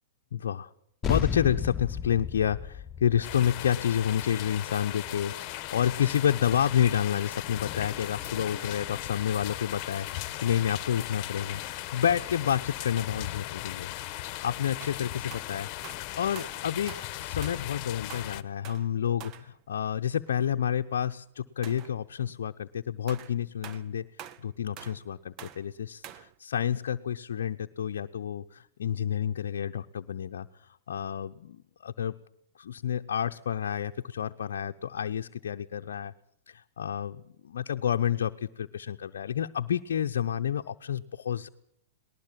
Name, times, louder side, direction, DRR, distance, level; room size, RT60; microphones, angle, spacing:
voice 1, 0.3-0.7 1.1-13.9 14.4-24.1 24.4-32.1 32.6-36.1 36.5-41.5, left 9 dB, 75° left, 5 dB, 0.7 m, -29 dB
sound 1, 1.0-5.8, left 7 dB, 20° left, 1.3 m, -34 dB
sound 2, 3.2-18.4, left 16 dB, 45° left, 1.2 m, -37 dB
sound 3, 10.9-11.1 11.8-12.1 13.8-13.9 14.8-17.7 18.1-19.6 20.3-20.4 20.8-20.9 21.6-22.3 23.1-26.3, right 10 dB, 35° right, 1.1 m, -47 dB
19.5 x 19.5 x 7.5 m, 0.74 s
hypercardioid pair, 110°, 0 cm